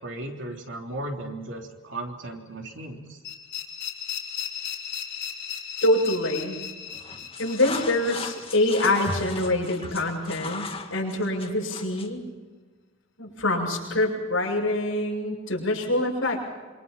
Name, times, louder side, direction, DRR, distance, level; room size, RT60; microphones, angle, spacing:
voice 1, 0.0-3.2, right 1 dB, 65° right, 2 dB, 3.5 m, -36 dB
sound 1, 3.2-10.1, left 8 dB, 60° left, 3.7 m, -37 dB
voice 2, 5.8-6.6 7.4-12.2 13.2-16.4, left 1 dB, 90° left, -1 dB, 7.4 m, -25 dB
sound 2, 6.9-12.2, left 4 dB, 30° left, 2.0 m, -38 dB
26.5 x 25.0 x 5.8 m, 1.4 s
head